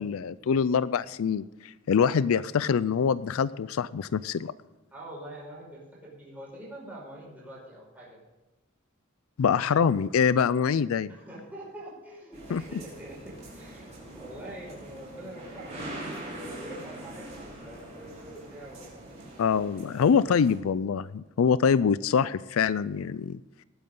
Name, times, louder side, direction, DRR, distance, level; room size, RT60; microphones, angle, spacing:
voice 1, 0.0-4.5 9.4-11.1 12.5-12.8 19.4-23.4, left 6 dB, 85° left, 17 dB, 0.4 m, -25 dB
voice 2, 4.9-8.2 11.1-15.8 16.1-18.9, right 1 dB, 10° right, -6 dB, 5.7 m, -44 dB
sound 1, 12.3-20.6, right 1 dB, 30° right, 4.5 m, -43 dB
20.0 x 9.4 x 3.8 m, 1.1 s
head